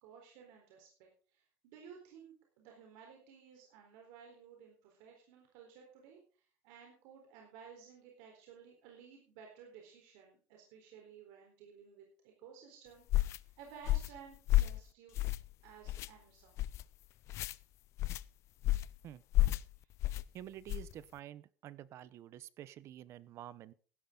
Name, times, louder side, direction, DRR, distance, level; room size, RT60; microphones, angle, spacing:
voice 1, 0.0-15.2 15.6-16.6 19.8-19.9, right 7 dB, 90° right, 1 dB, 4.1 m, -56 dB
sound 1, 13.1-13.4 13.8-14.2 14.5-14.8 15.1-15.5 15.8-16.1 16.6-16.8 17.3-17.5 18.0-18.2 18.6-18.9 19.3-19.6 20.0-20.2 20.7-20.9, left 16 dB, 55° left, 0.5 m, -31 dB
voice 2, 20.3-23.7, right 12 dB, 50° right, 18 dB, 0.8 m, -49 dB
16.5 x 11.5 x 3.8 m, 0.40 s
cardioid pair, 145°, 6 cm